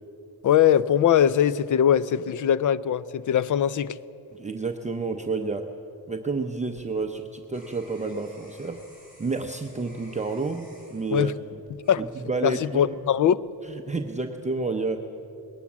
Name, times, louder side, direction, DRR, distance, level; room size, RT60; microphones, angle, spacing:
voice 1, 0.4-4.0 11.1-11.3 11.9-12.0 12.4-13.4, left 9 dB, 45° left, 0.5 m, -21 dB
voice 2, 4.3-5.7 6.1-8.8 9.2-11.3 12.0-12.9 13.6-15.1, right 3 dB, 15° right, 0.7 m, -30 dB
sound 1, 6.7-12.6 13.1-13.6, equal, 20° left, 3.7 m, -55 dB
20.5 x 18.0 x 7.3 m
wide cardioid pair, 160°, 42 cm